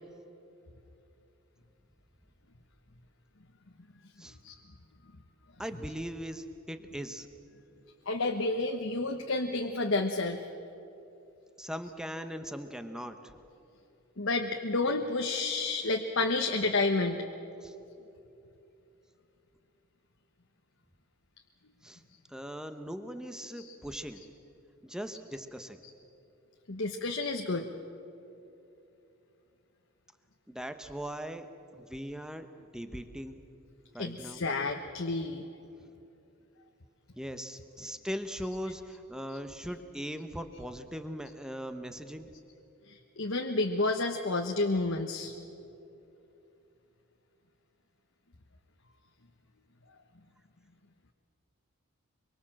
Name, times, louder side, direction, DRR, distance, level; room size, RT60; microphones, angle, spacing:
voice 1, 5.6-7.3 11.6-13.3 17.6-17.7 21.8-22.0 22.3-24.2 24.8-25.8 30.5-32.5 32.7-33.4 33.9-34.4 37.2-42.3, equal, 5° right, 8 dB, 1.1 m, -40 dB
voice 2, 8.1-10.4 14.2-17.3 23.5-23.7 25.8-25.9 26.7-27.7 34.0-35.5 39.3-39.4 42.9-45.3, left 3 dB, 60° left, 4 dB, 1.1 m, -30 dB
24.5 x 23.5 x 7.6 m, 2.9 s
head